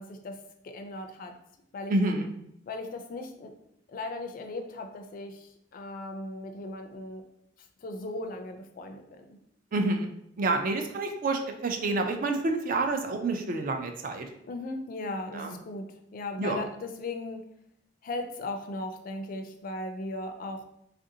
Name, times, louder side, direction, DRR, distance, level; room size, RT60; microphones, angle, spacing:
voice 1, 0.0-1.4 1.7-1.9 2.7-3.5 3.9-7.2 7.6-9.4 14.5-17.5 18.0-20.6, left 2 dB, 50° left, 6 dB, 0.3 m, -37 dB
voice 2, 1.9-2.3 9.7-10.1 10.4-14.3 15.3-15.5 16.4-16.6, right 2 dB, 45° right, 5 dB, 0.4 m, -28 dB
3.3 x 2.5 x 2.7 m, 0.75 s
head